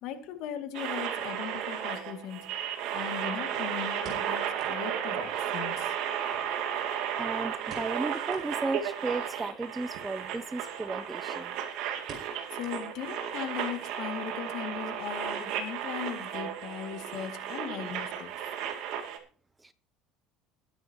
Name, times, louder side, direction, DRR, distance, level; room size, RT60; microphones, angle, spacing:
voice 1, 0.0-2.7 2.9-6.0 12.5-18.4, left 9 dB, 60° left, 2.3 m, -38 dB
sound 1, 0.7-19.2, right 9 dB, 65° right, 2.5 m, -34 dB
sound 2, 3.5-4.9 5.2-5.3 5.6-5.7 6.3-7.2 7.6-8.0 8.3-8.5 9.0-9.1 10.1-10.4 10.8-10.9 11.2-11.5 12.1-13.1 13.4-13.5 14.1-14.4 14.7-14.8, right 4 dB, 40° right, 5.1 m, -49 dB
voice 2, 7.2-11.6 19.6-19.7, right 3 dB, 10° right, 0.6 m, -35 dB
20.5 x 9.5 x 3.0 m
cardioid pair, 140°, 0 cm